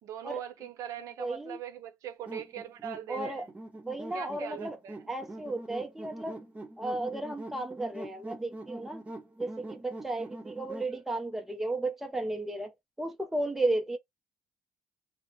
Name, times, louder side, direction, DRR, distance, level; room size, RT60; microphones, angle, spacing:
voice 1, 0.0-3.5 4.1-5.1, right 10 dB, 65° right, 0.7 m, -41 dB
voice 2, 1.2-1.6 3.1-3.5 3.9-4.8 5.1-6.4 6.8-9.0 9.4-12.7 13.0-14.0, right 2 dB, 5° right, 0.5 m, -34 dB
sound 1, 2.3-10.9, right 1 dB, 25° right, 1.0 m, -44 dB
2.7 x 2.0 x 2.7 m
cardioid pair, 95°, 6 cm